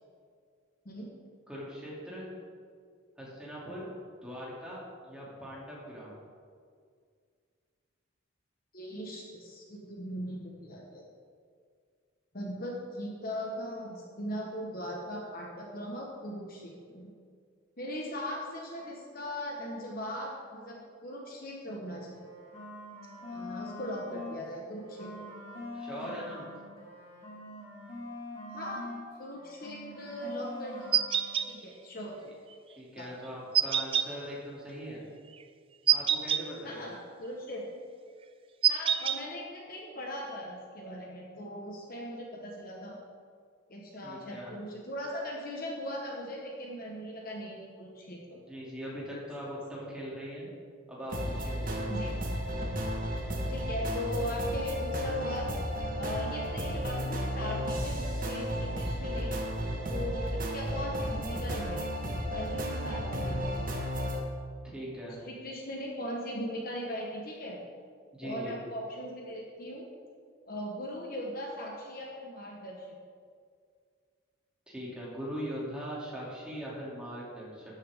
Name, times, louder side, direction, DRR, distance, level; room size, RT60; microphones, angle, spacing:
voice 1, 1.5-2.3 3.2-3.9 4.2-6.2 25.7-26.5 32.8-35.0 35.9-36.9 44.0-44.5 48.3-50.5 50.9-51.9 64.7-65.2 68.1-68.5 74.7-77.6, equal, 5° right, -7 dB, 2.9 m, -41 dB
voice 2, 8.7-11.0 12.3-17.1 17.8-22.2 23.2-25.2 28.5-28.9 29.2-31.0 31.4-32.2 32.9-33.1 36.6-37.6 38.7-43.0 43.7-48.4 51.9-52.1 53.5-55.5 55.9-59.3 59.9-61.8 62.3-63.7 65.2-67.6 68.2-69.8 70.5-72.9, equal, 45° left, -2 dB, 1.4 m, -39 dB
sound 1, 22.1-24.4 24.7-29.1 29.3-31.4, left 1 dB, 25° left, 2.3 m, -44 dB
sound 2, 30.9-31.5 33.5-34.1 35.9-36.4 38.6-39.2, right 8 dB, 25° right, 0.3 m, -25 dB
sound 3, 51.1-64.2, equal, 40° right, 1.6 m, -33 dB
12.5 x 10.5 x 3.7 m, 2.1 s
head